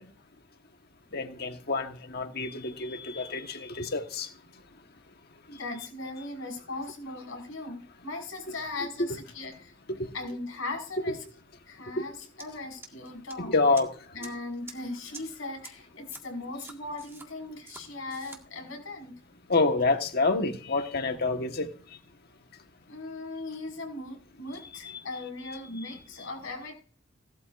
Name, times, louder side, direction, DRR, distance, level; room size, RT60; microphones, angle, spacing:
voice 1, 1.1-4.3 9.9-10.1 12.0-12.1 13.4-13.9 19.5-21.7 25.8-25.9, left 3 dB, 50° left, 1.4 m, -27 dB
voice 2, 5.5-9.7 10.1-11.3 11.7-13.6 14.1-19.1 22.9-26.7, left 2 dB, 85° left, 5.6 m, -38 dB
sound 1, 12.4-12.5 12.8-13.3 13.8-13.9 14.2-14.3 14.7-14.8 15.1-15.2 15.6-15.7 16.1-16.2 16.6-17.3 17.7-17.8 18.1-18.4, right 3 dB, 10° right, 1.8 m, -45 dB
17.5 x 12.5 x 2.6 m
head